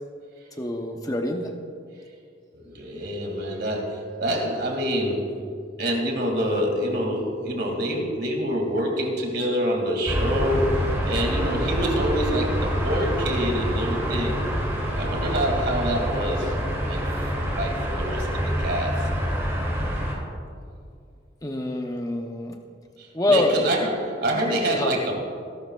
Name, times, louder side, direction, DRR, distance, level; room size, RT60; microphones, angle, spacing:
voice 1, 0.6-1.5 21.4-22.6 23.1-23.5 24.7-24.9, left 2 dB, 20° left, 3 dB, 0.8 m, -25 dB
voice 2, 2.5-14.4 15.0-16.6 16.9-19.1 23.0-25.2, equal, 55° right, 1 dB, 2.5 m, -26 dB
sound 1, 10.1-20.1, equal, 15° right, 2.5 m, -26 dB
22.5 x 12.0 x 2.4 m, 2.3 s
head